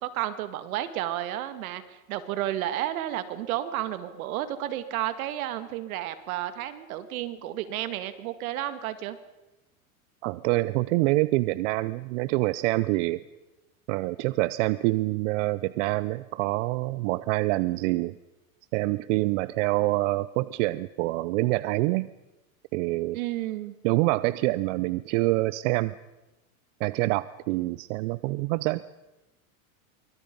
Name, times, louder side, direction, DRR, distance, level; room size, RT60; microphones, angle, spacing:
voice 1, 0.0-9.2 23.1-23.7, right 13 dB, 75° right, 11 dB, 2.1 m, -32 dB
voice 2, 10.2-13.2 13.9-18.2 18.7-22.1 22.7-23.2 23.8-25.9 26.8-28.8, right 20 dB, 55° right, 17 dB, 0.7 m, -26 dB
25.5 x 24.0 x 5.3 m, 1.0 s
supercardioid pair, 140°, 43 cm